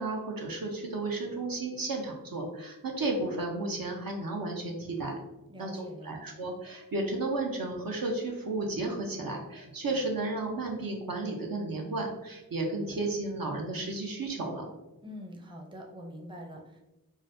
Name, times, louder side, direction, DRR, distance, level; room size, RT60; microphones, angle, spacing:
voice 1, 0.0-5.1 5.6-14.6, right 2 dB, 65° right, 0 dB, 0.7 m, -33 dB
voice 2, 5.5-6.1 15.0-16.8, equal, 15° right, 0 dB, 0.6 m, -44 dB
3.8 x 2.1 x 2.6 m, 1.0 s
cardioid pair, 40°, 37 cm